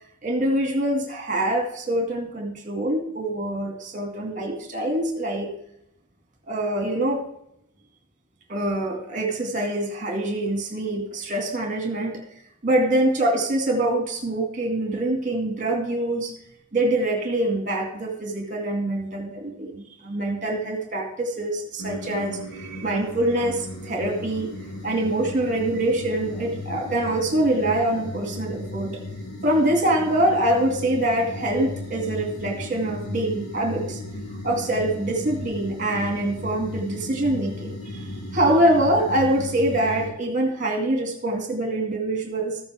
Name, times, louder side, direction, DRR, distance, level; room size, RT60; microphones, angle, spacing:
voice 1, 0.2-5.5 6.5-7.2 8.5-12.2 12.6-16.3 16.7-24.5 24.8-29.0 29.4-34.0 34.4-42.6, right 1 dB, 35° right, 2 dB, 2.3 m, -24 dB
sound 1, 21.8-40.1, left 1 dB, 80° left, 2.2 m, -36 dB
14.5 x 7.0 x 3.6 m, 0.77 s
head